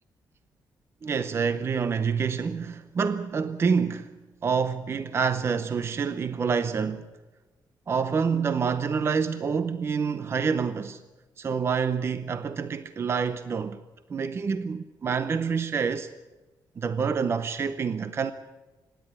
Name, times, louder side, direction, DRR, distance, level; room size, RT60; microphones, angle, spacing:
voice 1, 1.0-7.1 7.9-11.0 11.4-13.8 14.1-16.1 16.8-18.3, right 6 dB, 35° right, 0.7 m, -27 dB
25.5 x 10.5 x 9.8 m
cardioid pair, 145°, 8 cm